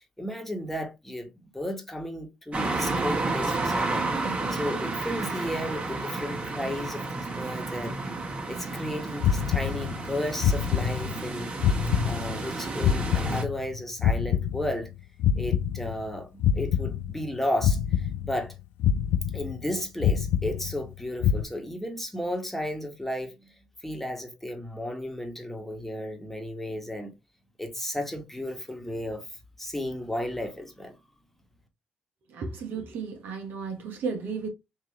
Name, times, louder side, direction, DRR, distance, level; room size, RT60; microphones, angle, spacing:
voice 1, 0.0-8.1 8.5-11.5 11.8-14.9 15.4-18.5 19.3-23.6 23.8-27.1 27.6-31.0, left 1 dB, 5° left, 1.4 m, -34 dB
sound 1, 2.5-13.4, right 3 dB, 40° right, 1.8 m, -31 dB
sound 2, 9.2-10.1 10.4-11.3 11.6-13.7 14.0-16.1 16.4-17.3 17.6-18.5 18.8-19.7 20.0-20.9 21.2-21.4, left 9 dB, 80° left, 0.3 m, -26 dB
voice 2, 32.3-34.5, right 5 dB, 70° right, 1.2 m, -34 dB
3.5 x 2.8 x 3.0 m
hypercardioid pair, 50°, 4 cm